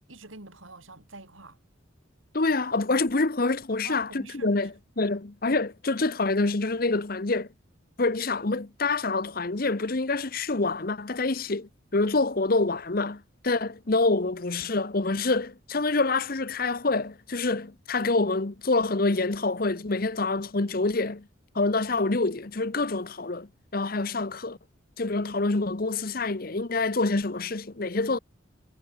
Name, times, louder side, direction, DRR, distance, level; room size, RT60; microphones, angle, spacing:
voice 1, 0.1-1.6 3.8-4.7, right 2 dB, 80° right, 7.7 m, -46 dB
voice 2, 2.3-7.5 8.0-21.3 21.5-24.6 25.0-28.2, left 3 dB, 45° left, 0.9 m, -26 dB
head